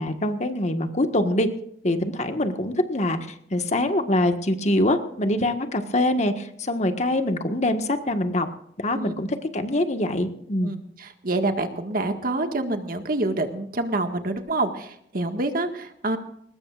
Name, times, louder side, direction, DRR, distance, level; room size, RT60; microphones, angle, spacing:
voice 1, 0.0-1.5 1.8-3.2 3.5-8.5 8.8-9.3 9.5-10.7, left 1 dB, 40° left, 6 dB, 1.6 m, -24 dB
voice 2, 10.6-16.2, right 2 dB, 55° right, 6 dB, 1.8 m, -27 dB
21.5 x 20.0 x 2.5 m, 0.71 s
head